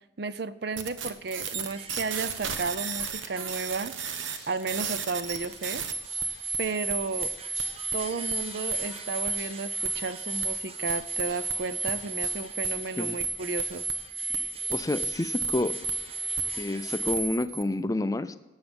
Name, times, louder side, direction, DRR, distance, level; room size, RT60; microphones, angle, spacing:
voice 1, 0.2-3.9 4.5-5.8 6.6-7.3 7.9-13.8, right 4 dB, 55° right, 14 dB, 0.5 m, -33 dB
sound 1, 0.8-17.6, right 4 dB, 80° right, 1.1 m, -33 dB
sound 2, 1.3-17.1, right 3 dB, 30° right, 1.0 m, -47 dB
sound 3, 4.4-14.0, right 1 dB, 15° right, 4.2 m, -53 dB
voice 2, 14.7-15.8 16.5-18.4, left 2 dB, 15° left, 13 dB, 0.4 m, -29 dB
17.5 x 8.0 x 5.3 m, 1.1 s
head